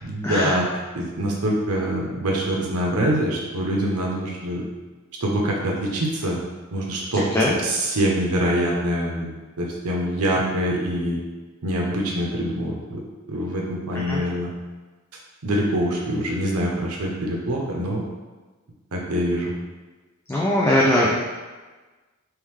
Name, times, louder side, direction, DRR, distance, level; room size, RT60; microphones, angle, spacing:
voice 1, 0.0-0.7 0.9-4.7 5.2-6.4 6.7-7.2 7.6-11.2 11.6-13.0 13.3-14.5 15.4-18.0 18.9-19.5, right 1 dB, 90° right, -1 dB, 0.7 m, -24 dB
voice 2, 20.3-21.2, left 1 dB, 10° left, -5 dB, 0.4 m, -20 dB
3.2 x 3.1 x 3.5 m, 1.3 s
head